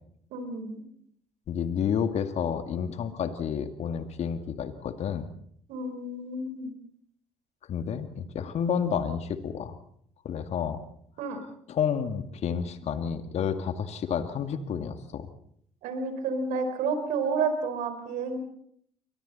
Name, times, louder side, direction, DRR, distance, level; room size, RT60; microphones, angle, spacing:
voice 1, 0.3-0.8 5.7-6.7 11.2-11.4 15.8-18.4, right 4 dB, 65° right, 7 dB, 4.7 m, -30 dB
voice 2, 1.5-5.3 7.7-9.8 10.2-10.8 11.7-15.3, left 7 dB, 50° left, 8 dB, 2.2 m, -30 dB
29.5 x 24.5 x 4.2 m, 0.67 s
figure-of-eight pair, 55°, 14 cm